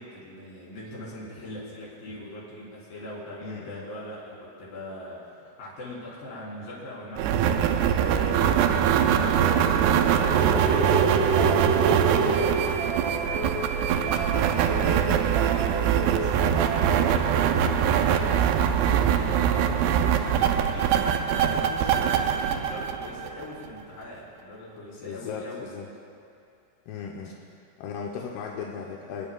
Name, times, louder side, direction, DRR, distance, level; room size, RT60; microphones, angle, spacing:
voice 1, 0.0-9.5 9.7-22.1 22.4-25.7, left 1 dB, 55° left, -6 dB, 4.9 m, -41 dB
voice 2, 3.4-3.8 14.7-15.2 25.0-25.9 26.9-27.3 27.8-29.3, left 6 dB, 80° left, -1 dB, 2.5 m, -37 dB
sound 1, 7.2-23.7, right 8 dB, 80° right, 2.5 m, -23 dB
sound 2, 7.9-17.3, right 2 dB, 60° right, 2.2 m, -35 dB
27.0 x 11.0 x 2.2 m, 2.6 s
omnidirectional pair, 5.1 m